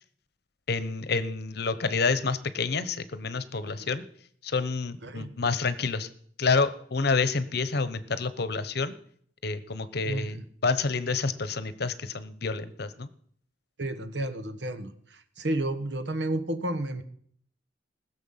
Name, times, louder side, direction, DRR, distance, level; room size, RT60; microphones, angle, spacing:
voice 1, 0.7-4.0 4.4-6.1 6.4-8.9 9.4-10.4 10.6-13.1, left 4 dB, 65° left, 13 dB, 0.9 m, -28 dB
voice 2, 5.0-5.3 10.1-10.4 13.8-14.9 15.4-17.0, right 1 dB, 75° right, 10 dB, 1.3 m, -31 dB
20.0 x 7.1 x 5.7 m, 0.62 s
head